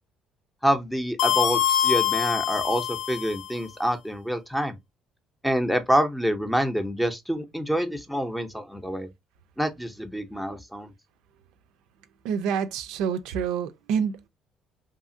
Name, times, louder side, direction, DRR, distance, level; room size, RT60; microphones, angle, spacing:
voice 1, 0.6-4.8 5.4-9.1 9.6-10.9, equal, ahead, 0.6 m, -27 dB
sound 1, 1.2-3.6, left 10 dB, 75° left, 0.4 m, -24 dB
voice 2, 12.2-14.3, right 7 dB, 85° right, 0.4 m, -27 dB
2.8 x 2.4 x 2.5 m
cardioid pair, 95°, 0 cm